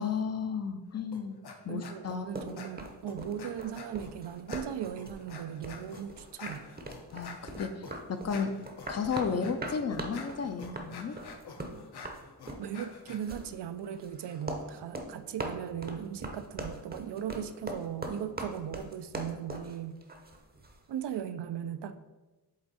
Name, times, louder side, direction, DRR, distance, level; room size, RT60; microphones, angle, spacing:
voice 1, 0.0-1.4 1.6-2.5 7.1-8.5 8.9-11.2, left 6 dB, 40° left, 9 dB, 0.4 m, -33 dB
sound 1, 1.1-1.6 1.8-2.2 2.6-4.1 4.5-13.2, left 4 dB, 70° left, 0.8 m, -47 dB
voice 2, 1.7-6.7 12.6-20.0 20.9-22.0, right 9 dB, 80° right, 11 dB, 0.5 m, -38 dB
sound 2, 2.3-20.8, right 1 dB, 25° right, 0.7 m, -41 dB
8.0 x 3.5 x 4.1 m, 1.1 s
wide cardioid pair, 150°, 40 cm